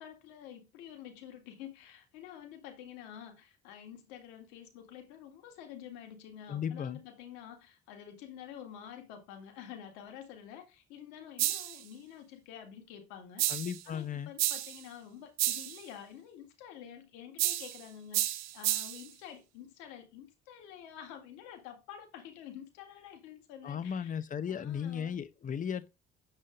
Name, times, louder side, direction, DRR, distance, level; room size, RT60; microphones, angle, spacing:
voice 1, 0.0-24.2 24.5-25.2, left 9 dB, 60° left, 1.9 m, -49 dB
voice 2, 6.5-7.0 13.5-14.3 23.6-25.9, left 8 dB, 25° left, 0.7 m, -36 dB
sound 1, 11.4-11.8 13.4-13.8 14.4-14.8 15.4-15.8 17.4-17.8 18.1-19.1, right 14 dB, 50° right, 1.0 m, -31 dB
9.4 x 7.3 x 2.6 m
figure-of-eight pair, 55°, 34 cm